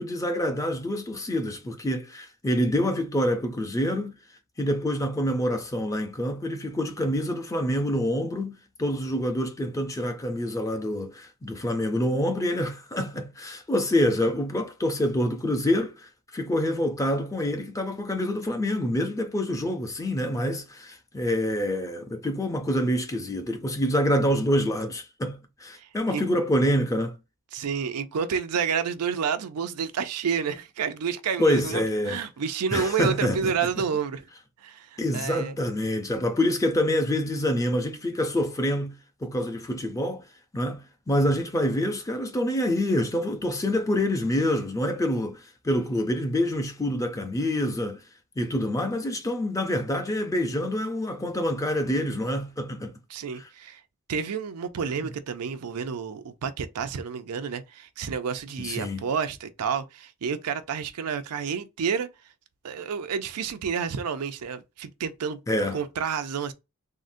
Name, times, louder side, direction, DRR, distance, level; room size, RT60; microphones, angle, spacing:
voice 1, 0.0-4.2 4.6-27.2 31.4-32.2 32.7-33.8 35.0-40.2 40.5-48.0 48.4-52.9 54.8-55.1 58.6-59.1 65.5-65.8, left 1 dB, 15° left, 0.4 m, -26 dB
voice 2, 25.8-26.2 27.5-34.2 34.6-35.6 53.1-53.8 54.1-62.1 62.6-65.4 65.7-66.5, right 6 dB, 90° right, 0.5 m, -30 dB
3.7 x 2.1 x 2.5 m
head